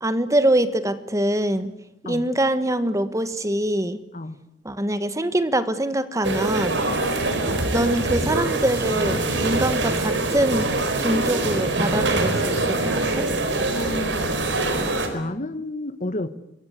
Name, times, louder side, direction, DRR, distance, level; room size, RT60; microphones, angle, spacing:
voice 1, 0.0-1.7 2.1-4.0 4.6-6.8 7.7-10.7 11.0-13.3, right 1 dB, 20° right, 12 dB, 1.5 m, -24 dB
sound 1, 6.2-15.1, right 2 dB, 85° right, 4.7 m, -24 dB
voice 2, 13.7-16.3, left 1 dB, 45° left, 12 dB, 1.4 m, -32 dB
27.5 x 23.5 x 8.3 m, 0.83 s
head